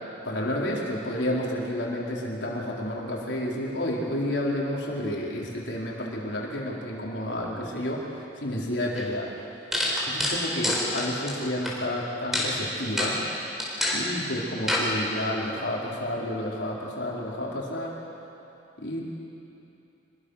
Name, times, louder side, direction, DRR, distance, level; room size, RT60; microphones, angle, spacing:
voice 1, 0.2-8.0 8.4-9.3 10.1-13.2 13.9-18.0 18.8-19.0, left 1 dB, 75° left, -4 dB, 4.1 m, -30 dB
sound 1, 9.0-9.1 9.7-11.7 12.3-12.5 13.0-13.1 13.6-14.0 14.7-14.9, left 1 dB, ahead, 4.5 m, -26 dB
26.0 x 22.0 x 6.5 m, 2.8 s
head